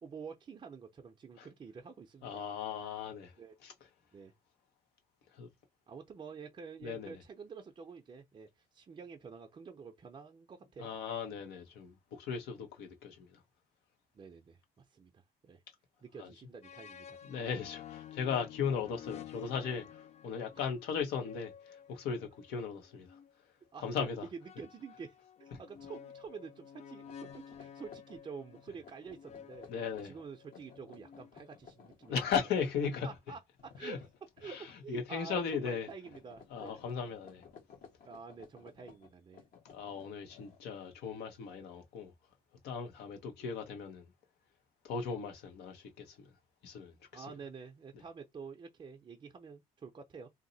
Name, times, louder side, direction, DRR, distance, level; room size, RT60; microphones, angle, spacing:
voice 1, 0.0-2.4 3.4-3.6 4.1-4.3 5.9-10.9 14.1-15.6 16.0-17.2 20.5-20.7 23.7-29.7 30.0-32.1 33.0-34.0 34.4-36.8 38.0-39.4 47.1-50.3, right 5 dB, 30° right, 0.5 m, -48 dB
voice 2, 2.2-3.3 3.6-3.7 5.4-5.5 6.8-7.2 10.8-13.4 16.2-16.3 17.3-23.2 23.8-24.2 29.7-30.1 32.1-33.1 33.8-34.0 34.4-34.6 34.9-35.9 36.5-37.4 39.6-42.1 42.6-44.0 44.8-46.3 46.6-47.2, left 6 dB, 80° left, 1.2 m, -37 dB
sound 1, 16.6-23.3 24.4-31.8, left 9 dB, 40° left, 0.4 m, -52 dB
sound 2, 25.5-25.8 26.2-26.4 26.9-34.9 35.2-35.6 35.8-40.9, left 6 dB, 55° left, 1.1 m, -58 dB
2.8 x 2.0 x 4.0 m
cardioid pair, 110°, 17 cm